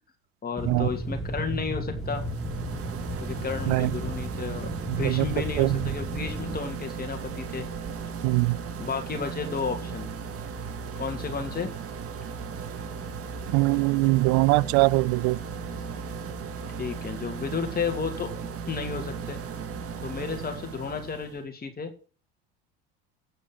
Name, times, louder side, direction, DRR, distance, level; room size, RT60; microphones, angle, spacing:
voice 1, 0.4-2.2 3.2-4.7 5.0-7.7 8.8-10.1 10.9-11.7 16.8-18.3 18.7-19.4 20.0-21.9, left 5 dB, 30° left, 2.7 m, -32 dB
sound 1, 0.6-6.6, right 1 dB, ahead, 2.3 m, -34 dB
sound 2, 2.0-21.4, right 5 dB, 45° right, 1.6 m, -36 dB
voice 2, 4.9-5.3 5.6-5.9 8.2-8.6 13.5-15.4, right 23 dB, 65° right, 0.5 m, -22 dB
9.1 x 5.1 x 7.6 m
hypercardioid pair, 80°, 31 cm